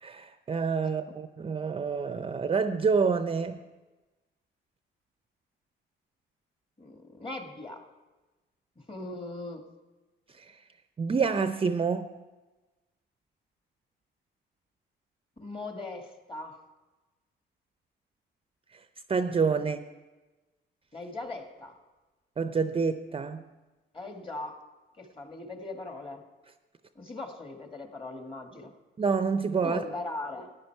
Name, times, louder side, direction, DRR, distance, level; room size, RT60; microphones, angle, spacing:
voice 1, 0.0-3.6 10.4-10.5 11.0-12.1 19.1-19.8 22.4-23.4 29.0-29.8, right 5 dB, 30° right, 10 dB, 0.5 m, -27 dB
voice 2, 6.8-7.8 8.9-9.7 15.4-16.6 20.9-21.8 23.9-24.6 25.0-26.2 27.0-28.7 29.6-30.5, left 2 dB, 25° left, 5 dB, 1.7 m, -39 dB
14.0 x 9.9 x 4.6 m, 1.2 s
cardioid pair, 90°, 20 cm